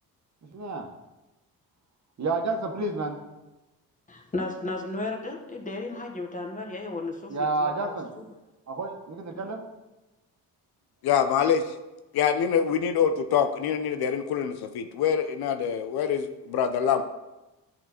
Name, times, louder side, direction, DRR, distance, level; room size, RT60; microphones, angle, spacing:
voice 1, 0.4-0.9 2.2-3.2 7.3-8.1 8.7-9.6, right 3 dB, 45° right, 2 dB, 1.6 m, -30 dB
voice 2, 4.1-8.3 9.3-9.4, left 2 dB, 20° left, 0 dB, 1.7 m, -34 dB
voice 3, 11.0-11.6 12.1-17.0, left 8 dB, 75° left, 8 dB, 0.8 m, -25 dB
10.5 x 4.4 x 4.5 m, 1.0 s
cardioid pair, 75°, 37 cm